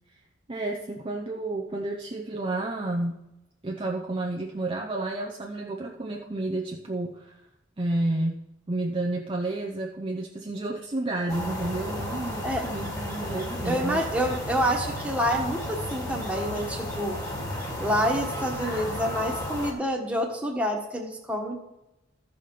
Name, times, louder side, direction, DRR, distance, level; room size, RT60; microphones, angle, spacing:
voice 1, 0.5-3.3 3.6-7.3 7.8-14.0, right 2 dB, 30° right, 0 dB, 0.6 m, -31 dB
sound 1, 11.3-19.7, left 1 dB, 20° left, 1.8 m, -33 dB
voice 2, 13.6-17.1 17.8-21.6, equal, 5° right, 0 dB, 1.4 m, -27 dB
13.5 x 5.0 x 5.9 m, 0.92 s
head